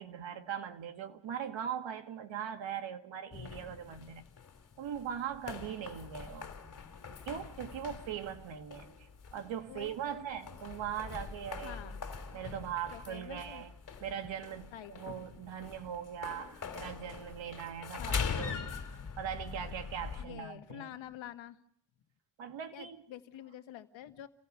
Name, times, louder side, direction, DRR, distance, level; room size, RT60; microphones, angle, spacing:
voice 1, 0.0-4.2 4.8-6.5 7.3-11.9 12.3-13.7 14.0-18.7 19.2-20.9 22.4-23.0, right 9 dB, 80° right, 1.8 m, -40 dB
sound 1, 3.3-20.2, left 6 dB, 40° left, 2.7 m, -43 dB
voice 2, 9.7-10.3 11.6-12.0 12.9-13.6 14.7-15.3 18.0-18.7 20.2-21.6 22.7-24.3, left 11 dB, 90° left, 1.4 m, -47 dB
28.0 x 17.0 x 5.5 m
cardioid pair, 105°, 45 cm